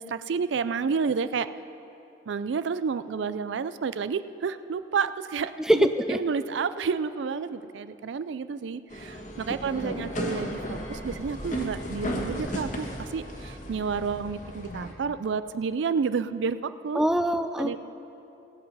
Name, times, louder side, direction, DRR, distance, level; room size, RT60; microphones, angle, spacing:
voice 1, 0.0-1.5 2.3-17.0 17.6-17.8, right 5 dB, 75° right, 13 dB, 0.4 m, -30 dB
voice 2, 5.6-6.2 9.8-10.3 16.9-17.8, equal, 5° right, 8 dB, 0.3 m, -24 dB
sound 1, 8.9-14.9, equal, 40° left, 1.5 m, -35 dB
17.5 x 7.8 x 5.5 m, 2.9 s
head